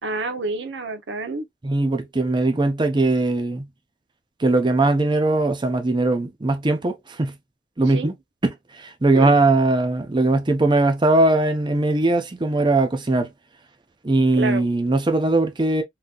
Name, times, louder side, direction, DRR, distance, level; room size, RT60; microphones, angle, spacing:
voice 1, 0.0-1.5 7.9-8.1 9.1-9.3 14.3-14.7, right 3 dB, 80° right, 0.7 m, -28 dB
voice 2, 1.6-3.7 4.4-7.4 7.8-8.1 8.4-13.3 14.0-15.8, right 2 dB, 25° right, 0.6 m, -20 dB
3.8 x 2.8 x 2.3 m
head